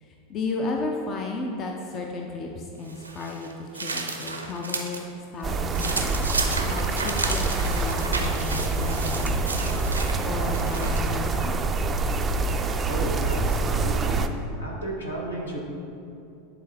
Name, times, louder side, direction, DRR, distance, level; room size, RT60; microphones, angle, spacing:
voice 1, 0.0-5.0 5.3-6.1 6.6-9.8 10.2-11.5, left 3 dB, 35° left, 1 dB, 0.6 m, -33 dB
sound 1, 2.9-5.0 5.4-11.2, right 3 dB, 85° right, 0.6 m, -32 dB
sound 2, 5.4-14.3, right 3 dB, 25° right, 0.4 m, -26 dB
voice 2, 12.9-14.3 14.6-15.6, right 1 dB, 80° left, -1 dB, 1.2 m, -33 dB
10.0 x 4.0 x 3.3 m, 2.7 s
figure-of-eight pair, 80°, 0 cm